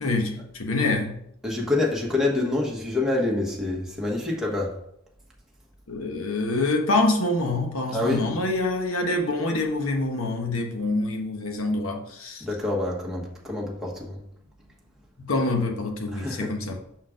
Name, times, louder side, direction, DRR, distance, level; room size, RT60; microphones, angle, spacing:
voice 1, 0.0-1.2 5.9-12.4 15.2-16.8, left 2 dB, 90° left, 3 dB, 1.2 m, -26 dB
voice 2, 1.4-4.7 7.9-8.2 12.4-14.2 16.1-16.5, left 2 dB, ahead, -3 dB, 1.2 m, -26 dB
6.2 x 4.2 x 5.0 m, 0.73 s
head